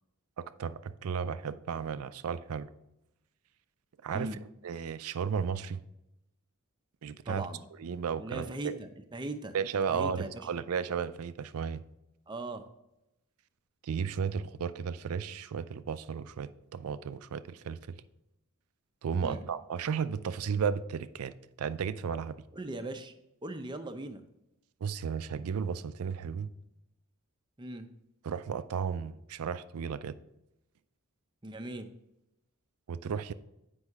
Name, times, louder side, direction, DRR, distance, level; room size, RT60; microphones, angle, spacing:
voice 1, 0.4-2.7 4.0-4.3 4.6-5.8 7.0-7.5 7.8-8.8 9.5-11.8 13.8-17.8 19.0-22.4 24.8-26.5 28.2-30.2 32.9-33.3, right 6 dB, 80° right, 0.4 m, -34 dB
voice 2, 7.2-7.6 8.2-9.5 9.9-10.5 12.3-12.6 19.2-19.4 22.5-23.1 23.4-24.2 27.6-27.9 31.4-31.9, right 2 dB, 20° right, 0.6 m, -39 dB
8.0 x 5.4 x 3.5 m
head